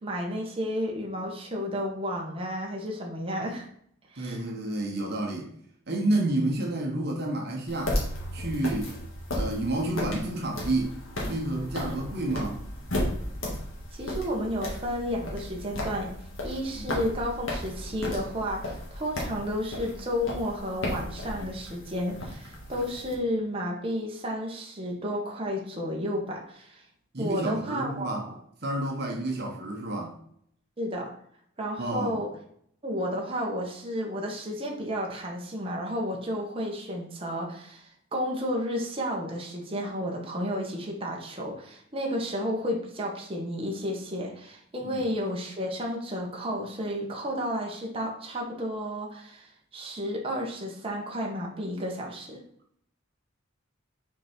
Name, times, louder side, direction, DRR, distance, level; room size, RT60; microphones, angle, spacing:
voice 1, 0.0-3.6 4.1-4.4 11.8-12.0 13.9-16.1 16.4-26.8 27.2-28.3 30.8-31.1 31.6-32.3 32.8-52.4, equal, 30° right, -1 dB, 1.4 m, -32 dB
voice 2, 4.2-5.5 5.9-8.0 8.3-9.0 9.3-11.0 11.3-12.6 16.7-16.9 27.1-28.2 28.6-30.2 31.8-32.2 44.8-45.0, right 1 dB, 55° right, 0 dB, 1.2 m, -30 dB
sound 1, 7.7-23.1, left 1 dB, 85° left, 2.2 m, -35 dB
6.0 x 4.7 x 4.5 m, 0.66 s
head